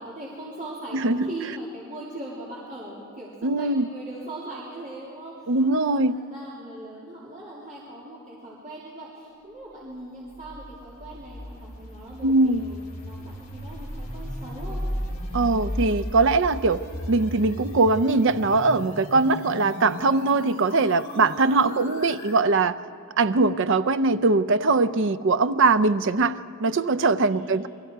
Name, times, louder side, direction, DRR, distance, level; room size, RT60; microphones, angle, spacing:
voice 1, 0.0-14.8 21.5-21.9 27.1-27.6, right 1 dB, 35° right, -7 dB, 3.1 m, -40 dB
voice 2, 0.9-1.3 3.4-3.9 5.5-6.2 12.2-12.7 15.3-16.8 17.1-22.8 23.2-27.7, right 3 dB, 55° right, 12 dB, 0.5 m, -21 dB
sound 1, 10.3-22.4, equal, 35° left, 3.7 m, -36 dB
28.5 x 22.0 x 4.7 m, 2.5 s
head